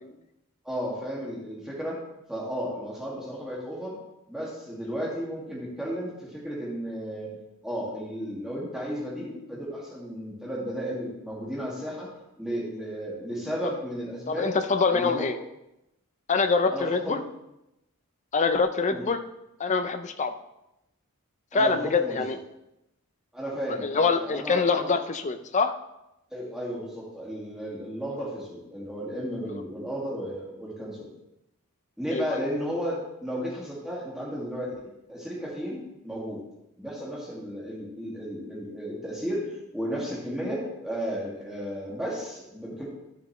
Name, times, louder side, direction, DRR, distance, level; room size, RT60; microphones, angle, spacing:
voice 1, 0.6-2.0 2.3-3.9 4.3-7.3 7.6-12.1 12.4-14.5 14.9-15.3 16.7-17.2 18.9-19.0 21.5-22.2 23.3-24.9 26.3-31.1 32.0-34.7 35.1-36.4 36.8-42.8, equal, ahead, -6 dB, 2.0 m, -34 dB
voice 2, 14.3-15.4 16.3-17.2 18.3-19.2 19.6-20.3 21.5-22.4 23.8-25.7 32.1-32.4, left 4 dB, 30° left, 8 dB, 0.5 m, -25 dB
12.5 x 6.9 x 3.1 m, 0.90 s
head